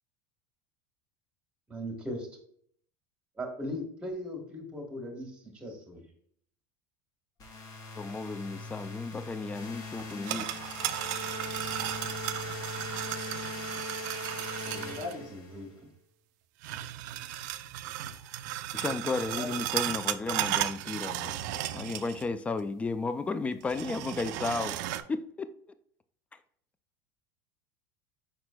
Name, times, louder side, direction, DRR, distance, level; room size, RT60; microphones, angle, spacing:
voice 1, 1.7-2.3 3.4-6.1 14.7-15.7, equal, 10° right, 1.4 m, -39 dB
sound 1, 7.4-15.7, left 2 dB, 35° left, 0.9 m, -40 dB
voice 2, 8.0-10.5 18.7-21.4 21.7-24.8 25.1-25.5, left 3 dB, 15° left, 0.3 m, -33 dB
sound 2, 10.0-15.1 16.6-22.3 22.6-22.7 23.6-25.0, right 13 dB, 75° right, 0.4 m, -35 dB
voice 3, 13.9-15.3 18.1-18.5 19.2-19.6, left 3 dB, 85° left, 2.0 m, -44 dB
5.0 x 4.3 x 2.2 m
supercardioid pair, 125°, 10 cm